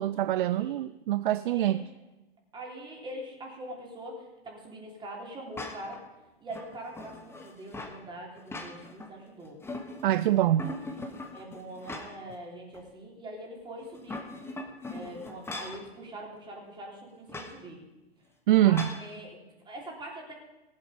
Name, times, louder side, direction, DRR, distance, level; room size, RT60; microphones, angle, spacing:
voice 1, 0.0-1.9 10.0-10.7 18.5-19.0, right 13 dB, 55° right, 15 dB, 0.4 m, -24 dB
voice 2, 1.5-1.9 2.5-6.0 6.4-9.6 10.4-10.7 11.3-14.2 14.9-17.8 18.6-20.3, right 1 dB, 15° right, -1 dB, 3.6 m, -43 dB
sound 1, 5.5-6.0 6.5-8.0 8.4-9.1 9.4-10.2 10.6-12.3 12.7-12.8 13.8-15.8 17.3-17.5 18.7-19.0, left 2 dB, 10° left, 1.4 m, -40 dB
18.0 x 8.1 x 5.2 m, 1.1 s
hypercardioid pair, 115°, 31 cm